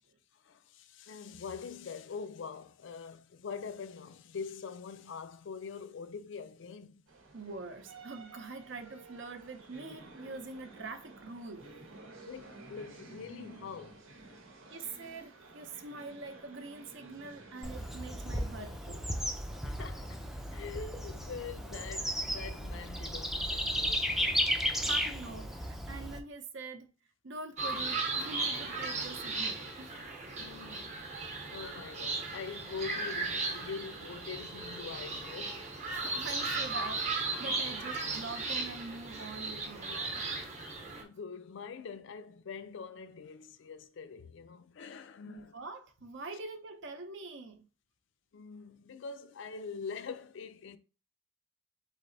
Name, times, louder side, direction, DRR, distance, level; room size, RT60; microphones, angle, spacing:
voice 1, 0.3-7.0 12.3-14.1 19.6-20.2 20.5-24.5 30.4-31.0 31.5-35.7 41.0-45.6 48.3-50.8, left 5 dB, 60° left, 0.4 m, -44 dB
sound 1, 7.1-25.7, right 3 dB, 80° right, 1.0 m, -54 dB
voice 2, 7.3-11.8 14.7-19.1 24.8-26.9 27.2-30.0 35.9-40.2 45.2-47.7, right 3 dB, 60° right, 0.7 m, -44 dB
Bird / Insect, 17.6-26.2, equal, ahead, 0.4 m, -34 dB
sound 2, 27.6-41.0, right 3 dB, 35° right, 0.9 m, -36 dB
4.1 x 3.3 x 3.9 m
head